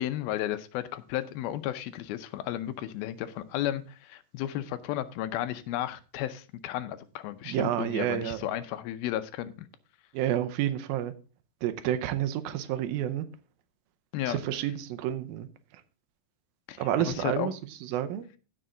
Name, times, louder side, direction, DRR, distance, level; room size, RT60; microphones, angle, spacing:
voice 1, 0.0-9.7 14.1-14.4 16.7-17.5, left 12 dB, 85° left, 2.6 m, -33 dB
voice 2, 7.4-8.5 10.1-11.1 11.6-13.3 14.3-15.5 16.8-18.3, right 11 dB, 80° right, 2.5 m, -30 dB
15.5 x 5.5 x 3.8 m
omnidirectional pair, 4.3 m